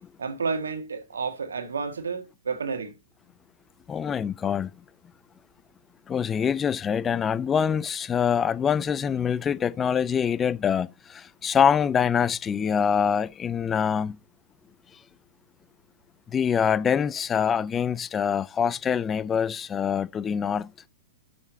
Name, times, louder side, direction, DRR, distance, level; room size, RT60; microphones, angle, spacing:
voice 1, 0.2-2.9, right 5 dB, 90° right, 1.6 m, -31 dB
voice 2, 3.9-4.7 6.1-14.2 16.3-20.7, left 7 dB, 20° left, 0.4 m, -25 dB
6.7 x 6.1 x 4.1 m
hypercardioid pair, 120°, 0 cm